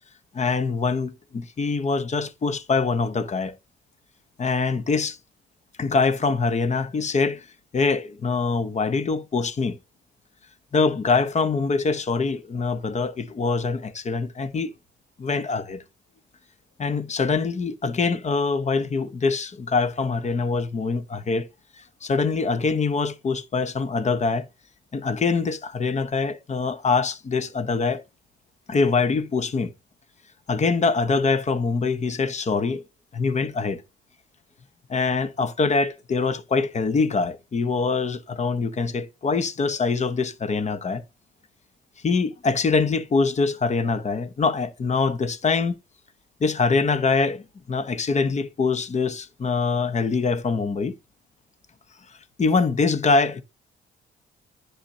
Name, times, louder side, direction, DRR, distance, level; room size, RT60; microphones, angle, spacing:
voice 1, 0.3-3.5 4.4-5.2 5.8-7.4 7.7-9.8 10.7-14.7 15.2-15.8 16.8-21.5 22.0-24.5 24.9-28.0 28.7-29.7 30.5-32.8 33.1-33.8 34.9-41.0 42.0-45.7 46.4-47.4 47.7-50.9 52.4-53.4, left 4 dB, 35° left, 0.9 m, -24 dB
10.0 x 5.7 x 2.7 m
cardioid pair, 90°, 20 cm